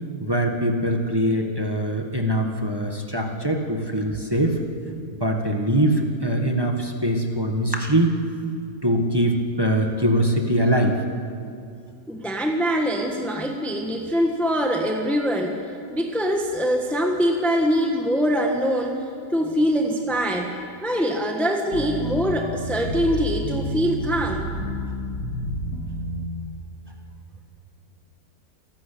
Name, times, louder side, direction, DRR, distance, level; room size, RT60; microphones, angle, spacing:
voice 1, 0.2-4.6 5.2-8.1 8.8-11.1, right 1 dB, 15° right, 2 dB, 1.6 m, -22 dB
voice 2, 12.1-15.6 15.9-20.5 20.8-24.5, equal, ahead, 2 dB, 1.4 m, -23 dB
sound 1, 21.7-26.3, left 1 dB, 55° left, 2.9 m, -30 dB
28.5 x 12.5 x 8.6 m, 2.3 s
omnidirectional pair, 1.7 m